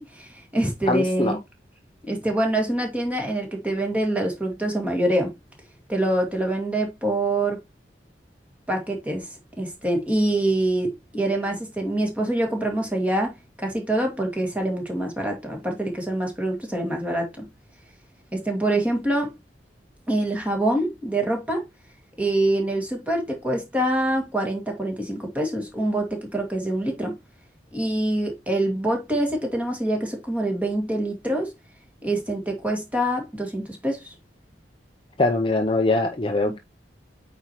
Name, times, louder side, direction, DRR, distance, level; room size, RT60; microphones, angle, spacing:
voice 1, 0.0-1.4 2.0-5.3 5.9-7.6 8.7-9.3 9.6-17.5 18.3-19.3 20.1-21.6 22.2-27.2 27.7-31.5 32.0-34.1 36.5-36.6, right 1 dB, 10° right, 2.1 m, -25 dB
voice 2, 0.9-1.4 35.2-36.6, left 2 dB, 30° left, 0.7 m, -22 dB
8.7 x 4.6 x 3.0 m
head